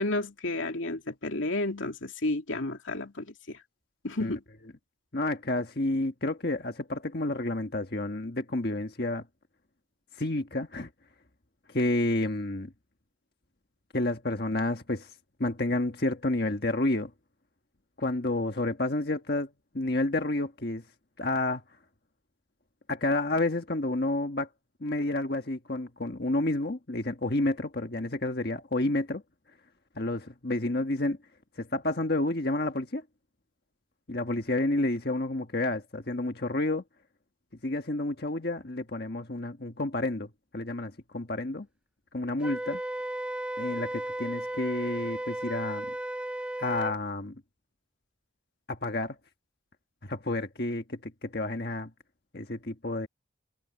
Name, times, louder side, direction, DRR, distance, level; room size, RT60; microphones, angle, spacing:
voice 1, 0.0-3.6 4.0-4.4, left 2 dB, 90° left, 2.7 m, -31 dB
voice 2, 5.1-9.2 10.2-10.9 11.7-12.7 13.9-15.1 15.4-17.1 18.0-19.5 19.7-20.8 21.2-21.6 22.9-24.5 24.8-29.2 29.9-31.2 31.6-33.0 34.1-36.8 37.6-40.3 40.5-41.7 42.1-42.8 43.6-45.9 46.6-47.3 48.7-49.1 50.0-51.9 52.3-53.1, left 2 dB, 55° left, 1.5 m, -30 dB
Wind instrument woodwind instrument, 42.4-47.0, right 1 dB, 5° right, 0.4 m, -34 dB
head